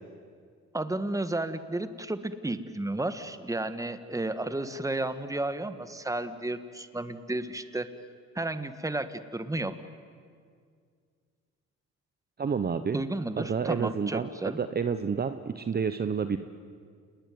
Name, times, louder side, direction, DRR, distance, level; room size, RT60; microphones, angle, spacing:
voice 1, 0.7-7.9 8.3-9.7 12.9-14.6, right 2 dB, 10° right, 11 dB, 1.5 m, -32 dB
voice 2, 12.4-13.0 13.4-14.3 14.6-16.4, right 6 dB, 30° right, 10 dB, 0.9 m, -29 dB
29.0 x 20.0 x 9.5 m, 2.1 s
cardioid pair, 90°, 30 cm